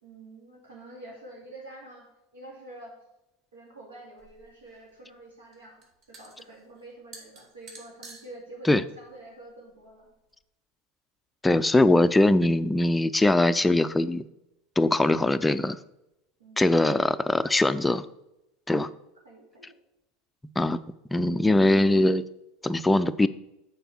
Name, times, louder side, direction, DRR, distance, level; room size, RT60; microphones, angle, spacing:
voice 1, 0.0-2.1 2.3-2.9 3.5-10.1 16.4-16.9 19.2-19.8, right 2 dB, 85° right, -1 dB, 2.5 m, -47 dB
sound 1, 4.2-10.3, right 3 dB, 50° right, 2.1 m, -52 dB
voice 2, 11.4-14.2 14.8-15.8 16.6-18.0 18.7-18.9 20.6-20.8 21.1-22.2 22.6-23.3, left 2 dB, 10° left, 12 dB, 0.4 m, -21 dB
6.8 x 4.6 x 5.9 m, 0.91 s
hypercardioid pair, 85°, 0 cm